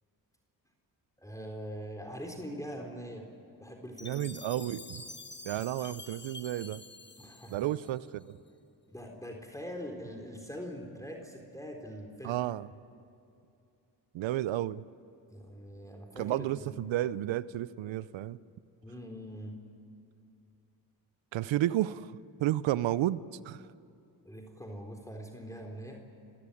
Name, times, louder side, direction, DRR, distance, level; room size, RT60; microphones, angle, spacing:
voice 1, 1.2-3.3 3.6-4.5 7.2-7.7 8.9-12.4 15.3-16.7 18.8-19.6 24.2-26.0, equal, 5° left, 3.8 m, -43 dB
Chime, 4.0-8.2, left 3 dB, 25° left, 1.5 m, -48 dB
voice 2, 4.0-5.0 5.4-6.8 7.5-8.4 12.2-12.7 14.1-14.8 16.2-18.4 21.3-23.7, right 13 dB, 75° right, 0.7 m, -32 dB
28.5 x 16.5 x 9.9 m
supercardioid pair, 40°, 46 cm